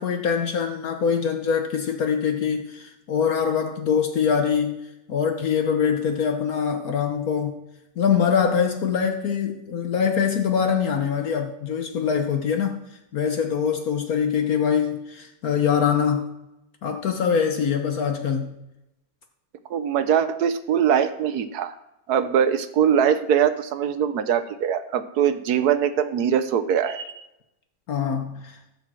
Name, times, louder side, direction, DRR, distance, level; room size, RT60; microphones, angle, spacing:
voice 1, 0.0-4.8 5.1-7.6 8.0-12.8 13.1-16.3 16.8-18.6 27.9-28.6, left 7 dB, 65° left, 4 dB, 1.4 m, -23 dB
voice 2, 19.7-21.7 22.1-27.2, right 8 dB, 75° right, 11 dB, 1.4 m, -22 dB
13.5 x 5.3 x 7.5 m, 0.93 s
omnidirectional pair, 1.7 m